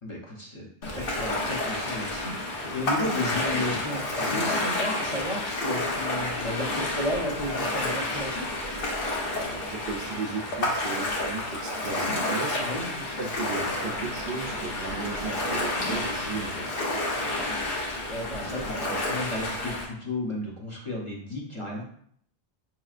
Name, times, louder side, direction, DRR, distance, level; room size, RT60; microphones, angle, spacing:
voice 1, 0.0-8.5 12.6-12.8 18.1-21.8, left 1 dB, 30° left, -3 dB, 0.8 m, -33 dB
Ocean, 0.8-19.8, left 1 dB, 65° left, 1.1 m, -30 dB
voice 2, 9.3-16.7, right 4 dB, 70° right, 2 dB, 0.8 m, -36 dB
5.2 x 3.0 x 2.4 m, 0.64 s
omnidirectional pair, 1.1 m